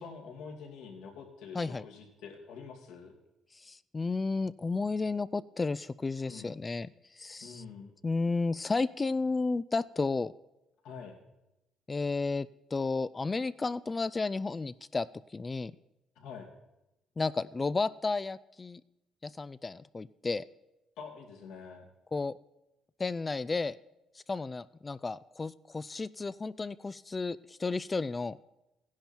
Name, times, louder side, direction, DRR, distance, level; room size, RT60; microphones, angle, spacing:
voice 1, 0.0-3.1 6.2-6.6 7.4-7.9 10.8-11.2 16.2-16.5 21.0-21.8, left 5 dB, 85° left, 0 dB, 2.7 m, -46 dB
voice 2, 1.5-1.8 3.6-6.9 7.2-7.6 8.0-10.3 11.9-15.1 15.3-15.7 17.2-18.8 19.2-20.4 22.1-22.4 23.0-23.8 24.3-28.4, left 3 dB, 25° left, 16 dB, 0.4 m, -32 dB
15.5 x 10.5 x 4.5 m, 0.93 s
cardioid pair, 90°, 0 cm